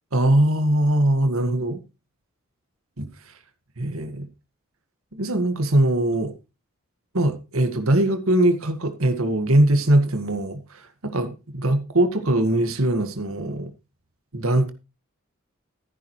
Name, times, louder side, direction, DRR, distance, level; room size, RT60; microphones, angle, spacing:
voice 1, 0.1-1.8 3.0-3.1 3.8-4.3 5.2-6.3 7.1-13.7 14.3-14.7, right 1 dB, 80° right, 1.9 m, -21 dB
13.5 x 11.0 x 3.2 m
head